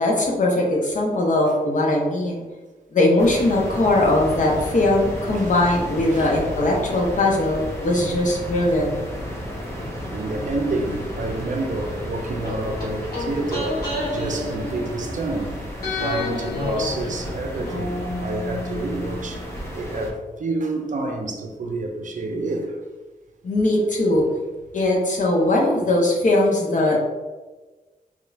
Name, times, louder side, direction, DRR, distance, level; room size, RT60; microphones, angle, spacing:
voice 1, 0.0-2.4 2.9-8.9 23.4-24.2 24.7-27.0, left 2 dB, 55° left, 0.8 m, -20 dB
sound 1, 3.2-20.1, equal, 15° left, 0.8 m, -33 dB
voice 2, 10.1-15.6 16.0-19.4 19.7-22.8, right 2 dB, 55° right, 0.5 m, -28 dB
sound 2, 12.4-15.4 15.8-19.6 19.9-20.0, left 2 dB, 80° left, 1.5 m, -30 dB
3.6 x 2.4 x 3.2 m
wide cardioid pair, 120°, 15 cm